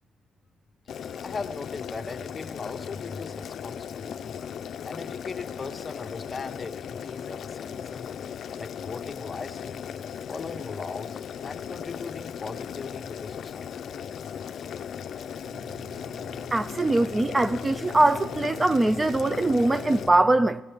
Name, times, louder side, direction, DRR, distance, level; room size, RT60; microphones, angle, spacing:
Boiling, 0.9-20.1, left 8 dB, 65° left, 0.5 m, -37 dB
voice 1, 1.1-4.3 4.8-8.1 8.6-9.8 10.3-13.7, left 4 dB, 30° left, 0.9 m, -38 dB
voice 2, 16.5-20.6, right 2 dB, 20° right, 0.4 m, -22 dB
20.0 x 17.0 x 3.5 m
cardioid pair, 90°, 0 cm